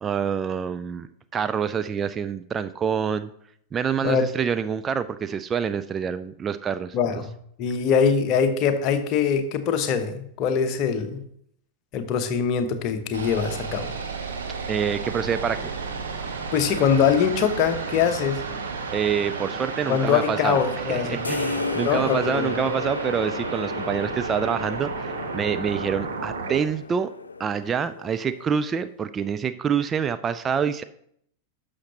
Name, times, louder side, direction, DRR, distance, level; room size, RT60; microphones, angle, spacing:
voice 1, 0.0-3.3 3.7-7.0 14.7-15.7 18.9-20.6 20.9-27.1 27.4-30.8, right 7 dB, 20° right, 11 dB, 0.3 m, -26 dB
voice 2, 6.9-7.3 7.6-11.2 11.9-14.0 16.5-18.4 19.9-21.2 21.8-22.5, left 7 dB, 40° left, 8 dB, 0.9 m, -23 dB
sound 1, 13.1-26.6, right 4 dB, 70° right, 1.3 m, -32 dB
sound 2, 21.2-28.8, left 4 dB, 75° left, 0.4 m, -34 dB
11.0 x 6.5 x 2.9 m, 0.69 s
figure-of-eight pair, 90°, 0 cm